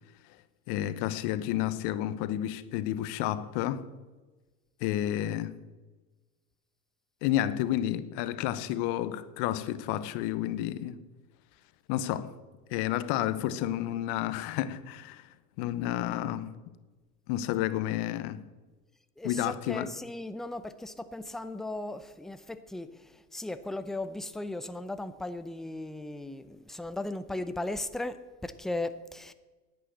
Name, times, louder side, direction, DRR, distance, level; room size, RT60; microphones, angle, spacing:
voice 1, 0.7-3.8 4.8-5.6 7.2-11.0 11.9-12.3 12.7-15.3 15.6-16.6 17.3-18.4 19.2-19.9, left 12 dB, 55° left, 1.0 m, -31 dB
voice 2, 19.2-29.3, left 2 dB, ahead, 0.5 m, -37 dB
10.5 x 8.6 x 7.9 m
hypercardioid pair, 85°, 48 cm